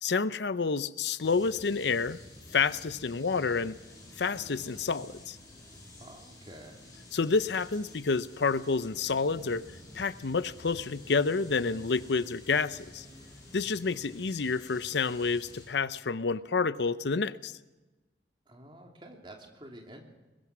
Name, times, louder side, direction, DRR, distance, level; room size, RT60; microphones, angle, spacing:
voice 1, 0.0-2.2 2.5-3.8 4.2-5.4 7.1-9.6 9.9-13.0 13.5-17.5, left 4 dB, 75° left, 14 dB, 0.6 m, -29 dB
sound 1, 1.2-15.6, left 1 dB, 20° left, 7.6 m, -50 dB
voice 2, 6.0-6.8 18.5-20.0, right 1 dB, 30° right, 1 dB, 3.1 m, -49 dB
22.0 x 21.0 x 6.1 m, 1.2 s
head